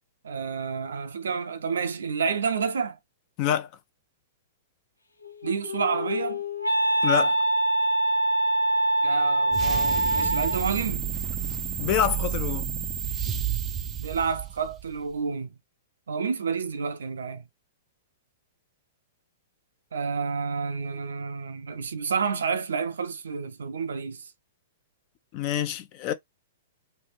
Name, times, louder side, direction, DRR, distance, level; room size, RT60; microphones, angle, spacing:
voice 1, 0.2-3.0 5.4-6.4 9.0-11.1 14.0-15.5 16.1-17.4 19.9-24.3, right 5 dB, 70° right, 0.5 m, -29 dB
voice 2, 3.4-3.7 7.0-7.4 11.8-12.7 25.3-26.1, left 10 dB, 40° left, 0.8 m, -26 dB
Wind instrument woodwind instrument, 5.2-10.7, right 1 dB, 85° left, 0.7 m, -24 dB
sound 1, 9.5-14.9, right 9 dB, 20° right, 0.5 m, -30 dB
3.3 x 2.8 x 3.0 m
figure-of-eight pair, 105°, 0 cm